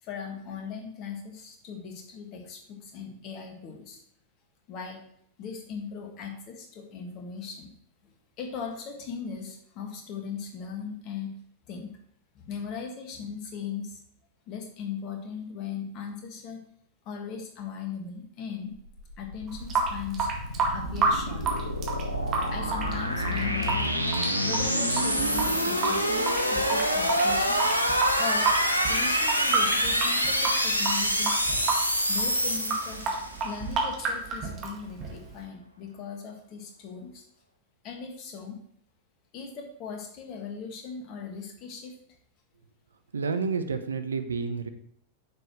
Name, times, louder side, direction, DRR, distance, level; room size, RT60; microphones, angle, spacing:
voice 1, 0.0-4.0 4.7-5.0 5.4-7.7 8.0-8.1 8.4-11.4 11.7-11.9 12.3-14.0 14.5-16.6 17.0-18.8 19.2-20.3 20.7-21.6 22.5-23.8 24.4-27.6 28.2-28.5 28.9-31.3 32.1-33.0 33.4-37.2 37.8-38.6 39.3-41.9, left 6 dB, 40° left, 2 dB, 1.8 m, -38 dB
sound 1, 18.9-33.5, equal, 90° left, 0.9 m, -27 dB
Water tap faucet / Sink (filling or washing) / Drip, 19.5-35.4, right 4 dB, 30° right, 1.9 m, -30 dB
voice 2, 43.1-44.7, right 5 dB, 70° right, 9 dB, 0.7 m, -29 dB
9.5 x 6.8 x 3.2 m, 0.67 s
figure-of-eight pair, 90°, 0 cm